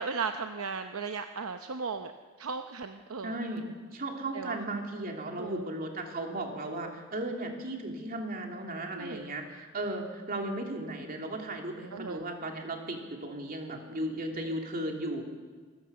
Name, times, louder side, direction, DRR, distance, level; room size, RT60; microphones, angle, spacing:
voice 1, 0.0-2.1 2.4-3.4 4.3-4.6 5.4-5.7 8.9-9.2 11.9-12.2, right 5 dB, 70° right, 7 dB, 0.8 m, -36 dB
voice 2, 3.2-3.7 3.9-15.2, right 1 dB, 45° right, 2 dB, 2.9 m, -36 dB
26.5 x 15.0 x 7.0 m, 1.5 s
head